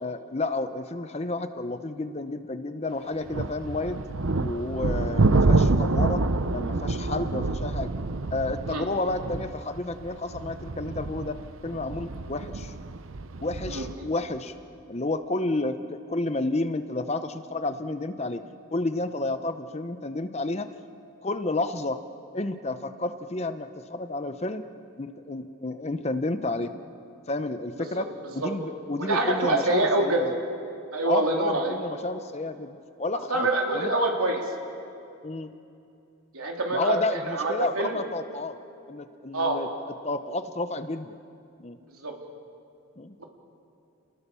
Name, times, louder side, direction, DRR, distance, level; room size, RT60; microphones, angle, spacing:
voice 1, 0.0-4.0 4.4-6.2 6.5-7.9 8.3-11.4 11.6-12.7 13.4-14.5 14.9-18.4 18.7-20.7 21.2-22.0 22.3-24.6 25.0-26.7 27.3-30.3 31.0-33.5 33.7-33.9 35.2-35.5 36.7-38.6 38.9-39.7 40.0-41.2 41.6-41.8 43.0-43.2, left 2 dB, 30° left, 10 dB, 0.7 m, -31 dB
sound 1, 3.3-13.9, right 3 dB, 70° right, 0.8 m, -27 dB
voice 2, 13.7-14.1 27.8-27.9 28.4-28.5 29.0-30.2 30.9-31.7 33.3-34.4 36.3-37.0 37.3-38.0 39.3-39.6 42.0-42.1 43.2-43.3, right 2 dB, 85° right, 0 dB, 3.6 m, -25 dB
29.5 x 19.5 x 7.0 m, 2.7 s
head